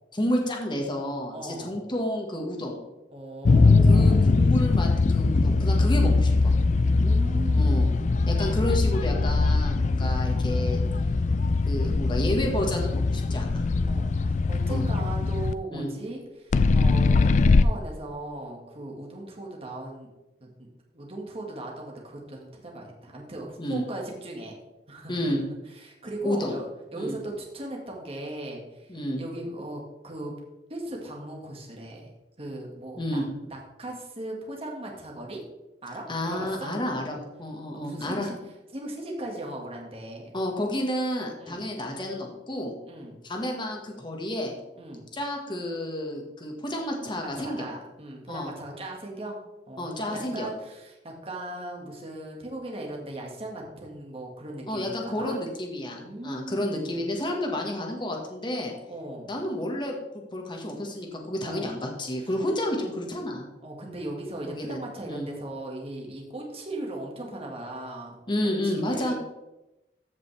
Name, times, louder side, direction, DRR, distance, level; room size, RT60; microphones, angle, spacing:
voice 1, 0.1-2.8 3.9-6.5 7.5-7.9 8.3-10.8 11.7-13.6 14.7-14.8 15.7-15.9 23.6-23.8 25.1-25.4 26.2-26.6 26.9-27.2 28.9-29.2 33.0-33.3 36.1-38.3 40.3-42.7 43.2-44.5 45.1-47.7 48.3-48.5 49.8-50.5 54.7-58.7 59.2-63.5 64.5-64.8 65.1-65.3 68.3-69.1, left 1 dB, 25° left, 1 dB, 1.6 m, -30 dB
voice 2, 1.3-1.7 3.1-4.4 6.7-7.9 13.9-17.3 17.6-20.1 20.4-20.5 20.9-24.5 24.9-25.4 25.8-26.7 26.9-28.9 29.2-30.3 30.7-32.1 32.4-33.2 33.5-35.4 35.8-36.7 37.7-38.4 38.7-40.3 41.4-41.6 42.9-43.2 44.8-45.1 47.2-49.4 49.7-55.4 55.9-57.1 58.9-59.3 61.4-61.7 62.2-62.3 63.6-68.2 68.6-69.1, right 1 dB, 35° right, -1 dB, 1.9 m, -38 dB
sound 1, 3.5-15.5 16.5-17.6, left 3 dB, 45° left, 0.3 m, -21 dB
14.5 x 5.3 x 3.4 m, 0.98 s
head